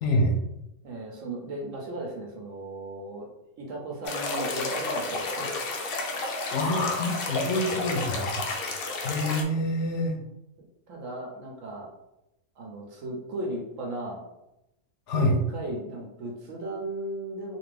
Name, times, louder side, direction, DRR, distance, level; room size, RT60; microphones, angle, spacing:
voice 1, 0.0-0.3 6.5-8.4 9.0-10.1 15.1-15.4, left 1 dB, 65° left, 2 dB, 0.8 m, -26 dB
voice 2, 0.8-3.3 3.6-5.5 10.9-11.9 12.6-14.2 15.1-15.2 15.5-17.6, right 1 dB, 65° right, -1 dB, 1.0 m, -36 dB
sound 1, 4.0-9.4, left 3 dB, 80° left, 0.5 m, -31 dB
2.6 x 2.5 x 3.3 m, 0.89 s
omnidirectional pair, 1.6 m